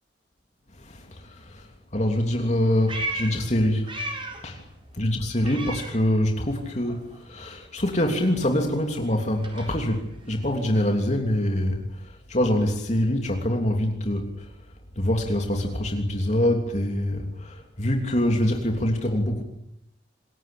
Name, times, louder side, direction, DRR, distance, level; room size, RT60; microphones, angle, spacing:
voice 1, 0.8-3.9 4.4-4.6 5.0-14.5 15.0-19.4, left 1 dB, 40° left, 3 dB, 3.1 m, -25 dB
Meow, 2.4-4.6 4.9-6.6 6.8-11.0, right 2 dB, 30° right, 7.9 m, -37 dB
27.5 x 22.0 x 8.6 m, 0.80 s
head